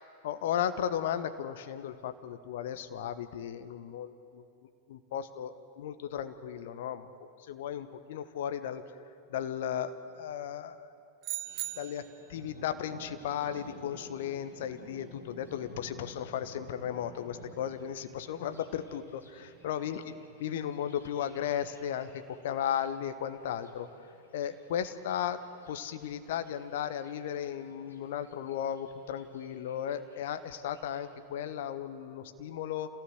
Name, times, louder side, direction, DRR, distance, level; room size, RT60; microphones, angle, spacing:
voice 1, 0.2-4.4 4.9-7.1 7.5-8.8 9.3-10.9 11.8-19.2 19.6-20.1 20.4-23.9 24.3-25.4 25.7-32.9, left 9 dB, 55° left, 10 dB, 1.2 m, -35 dB
sound 1, 11.2-12.3, right 14 dB, 35° right, 0.7 m, -38 dB
Thunder, 11.4-31.0, left 1 dB, 75° left, 3.4 m, -54 dB
27.0 x 17.0 x 8.0 m, 2.5 s
figure-of-eight pair, 90°, 0 cm